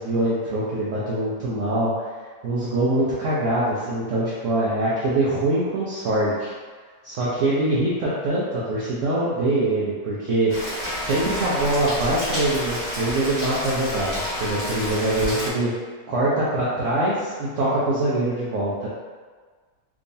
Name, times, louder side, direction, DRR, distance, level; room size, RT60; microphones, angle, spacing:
voice 1, 0.0-2.1 2.4-6.5 7.0-10.5 11.0-15.7 16.1-18.9, right 1 dB, 60° right, -8 dB, 0.9 m, -23 dB
Rain, 10.5-15.5, equal, 60° left, 1.7 m, -29 dB
3.5 x 2.9 x 2.6 m, 1.5 s
omnidirectional pair, 1.7 m